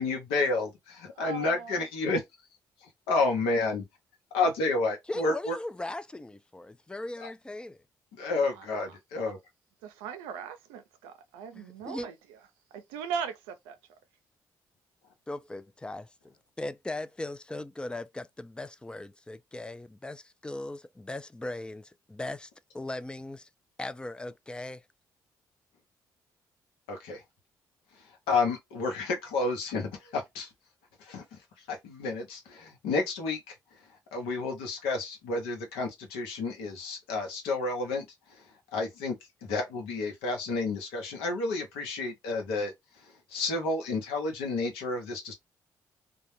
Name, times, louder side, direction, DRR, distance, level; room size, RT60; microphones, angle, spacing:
voice 1, 0.0-2.2 2.8-3.8 4.3-5.6 7.2-7.3 8.2-9.4 26.9-27.2 28.3-30.5 31.0-31.2 31.7-33.5 34.1-38.4 38.7-42.7 43.0-45.3, left 3 dB, 85° left, 0.7 m, -30 dB
voice 2, 1.1-1.8 8.3-9.3 9.8-12.4 12.7-13.8, right 7 dB, 90° right, 0.4 m, -39 dB
voice 3, 5.1-7.8 11.5-12.1 15.3-23.5 23.8-24.8, left 2 dB, 10° left, 0.3 m, -39 dB
2.2 x 2.0 x 3.0 m
hypercardioid pair, 50°, 9 cm